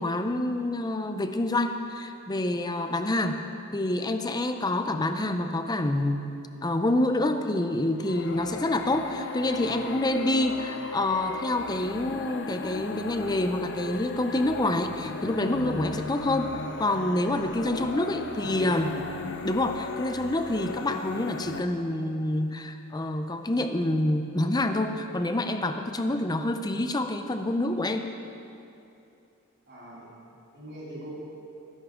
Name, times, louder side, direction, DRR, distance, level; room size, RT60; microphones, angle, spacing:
voice 1, 0.0-3.4 3.7-6.2 6.6-18.9 19.4-28.1, left 1 dB, 20° left, 7 dB, 0.6 m, -27 dB
sound 1, 8.0-21.6, left 3 dB, 55° left, 0.7 m, -37 dB
voice 2, 17.9-19.1 29.7-30.1 30.5-31.1, right 1 dB, 50° right, -7 dB, 3.0 m, -41 dB
18.5 x 10.5 x 3.7 m, 2.8 s
head